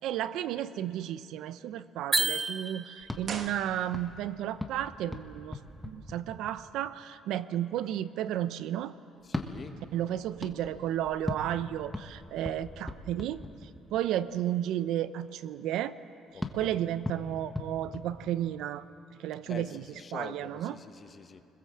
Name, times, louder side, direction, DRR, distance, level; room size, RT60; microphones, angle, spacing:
voice 1, 0.0-5.6 5.8-8.9 9.9-16.0 16.5-18.9 19.2-19.8 20.1-20.7, right 11 dB, 75° right, 14 dB, 0.7 m, -33 dB
sound 1, 2.1-3.3, right 3 dB, 15° right, 0.5 m, -30 dB
sound 2, 3.0-6.8 9.2-14.1 16.4-18.8, left 2 dB, 5° left, 1.3 m, -40 dB
sound 3, 3.2-4.3 4.6-4.7, right 5 dB, 40° right, 1.4 m, -41 dB
voice 2, 9.2-9.8 16.3-16.9 19.4-21.4, left 5 dB, 30° left, 8 dB, 1.1 m, -45 dB
26.0 x 21.0 x 7.5 m, 2.7 s
cardioid pair, 150°, 0 cm